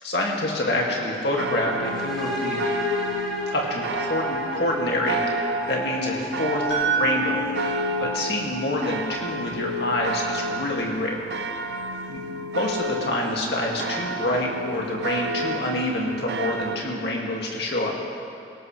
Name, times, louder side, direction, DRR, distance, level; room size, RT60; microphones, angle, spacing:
voice 1, 0.0-2.6 3.5-7.6 7.9-11.3 12.1-12.2 12.5-18.0, left 1 dB, 65° left, -2 dB, 2.2 m, -27 dB
sound 1, 1.4-16.8, right 2 dB, 70° right, 0.6 m, -31 dB
sound 2, 1.8-9.5, left 1 dB, ahead, 4.3 m, -33 dB
sound 3, 6.7-10.8, right 4 dB, 90° left, 2.4 m, -30 dB
18.5 x 18.0 x 3.3 m, 2.5 s
head